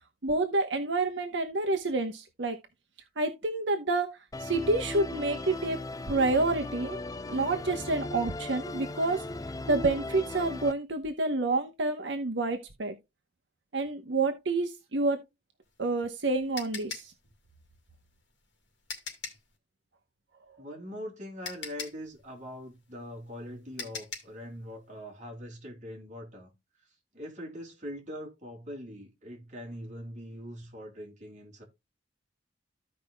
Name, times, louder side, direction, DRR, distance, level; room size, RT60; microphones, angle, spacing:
voice 1, 0.2-2.6 3.2-7.0 7.3-9.2 9.7-13.0 13.7-15.2 15.8-17.1, right 2 dB, 75° right, 0.9 m, -28 dB
Musical instrument, 4.3-10.7, left 2 dB, 20° left, 0.4 m, -37 dB
sound 1, 15.6-19.5 20.9-21.0 21.4-24.4, left 5 dB, 80° left, 2.3 m, -41 dB
voice 2, 20.6-26.5 27.1-31.6, equal, 40° right, 2.6 m, -42 dB
15.0 x 5.1 x 2.2 m
head